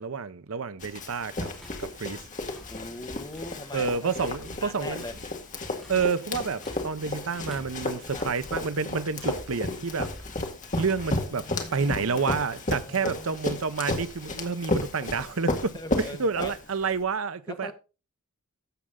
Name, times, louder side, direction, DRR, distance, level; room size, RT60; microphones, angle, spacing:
voice 1, 0.0-1.5 1.8-2.2 3.7-5.0 5.9-10.1 10.8-17.7, right 5 dB, 65° right, 0.7 m, -29 dB
Run, 0.8-17.0, left 2 dB, 35° left, 1.8 m, -33 dB
sound 1, 1.5-3.8 4.1-9.7 10.0-11.9, equal, ahead, 4.0 m, -49 dB
voice 2, 2.6-5.1 8.1-8.3 10.8-12.2 12.7-13.4 15.7-16.5 17.5-17.7, left 2 dB, 20° left, 1.3 m, -41 dB
12.5 x 7.5 x 3.7 m
head